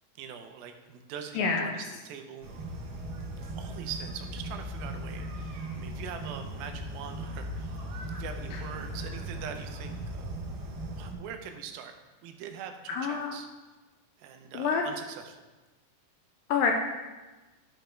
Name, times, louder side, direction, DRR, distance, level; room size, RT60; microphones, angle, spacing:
voice 1, 0.2-2.5 3.5-7.8 8.2-10.4 11.0-11.9 12.2-13.5 14.2-15.4, right 7 dB, 85° right, 6 dB, 2.5 m, -43 dB
voice 2, 1.4-1.7 8.5-8.6 12.9-13.3 14.5-14.8 16.5-16.7, left 5 dB, 80° left, 2 dB, 2.3 m, -27 dB
sound 1, 2.4-11.1, right 1 dB, 70° right, 1.2 m, -38 dB
11.5 x 5.2 x 4.4 m, 1.2 s
omnidirectional pair, 4.2 m